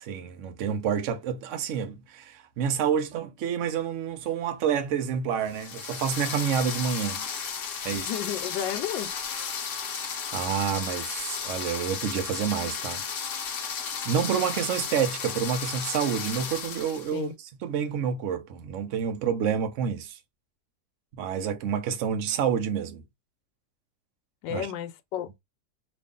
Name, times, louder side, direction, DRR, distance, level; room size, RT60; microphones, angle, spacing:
voice 1, 0.0-7.2 7.8-8.1 10.2-13.0 14.0-17.3 17.6-20.2 21.1-23.0 24.5-24.7, right 7 dB, 60° right, 0.8 m, -28 dB
sound 1, 5.5-17.2, left 6 dB, 55° left, 0.9 m, -34 dB
voice 2, 7.9-9.1 17.1-17.3 24.4-25.4, left 11 dB, 80° left, 1.3 m, -33 dB
3.1 x 2.5 x 3.6 m
omnidirectional pair, 2.0 m